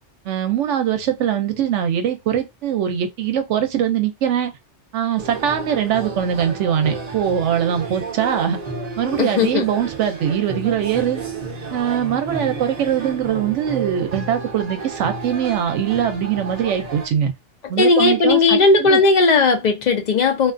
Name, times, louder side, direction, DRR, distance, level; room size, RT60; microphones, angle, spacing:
voice 1, 0.3-4.5 4.9-8.6 9.0-11.3 11.7-17.3 17.7-19.0, right 9 dB, 80° right, 0.9 m, -22 dB
sound 1, 5.2-17.1, right 4 dB, 40° right, 0.7 m, -31 dB
voice 2, 9.2-9.6 17.8-20.5, left 3 dB, 55° left, 0.5 m, -16 dB
2.4 x 2.3 x 2.4 m
omnidirectional pair, 1.2 m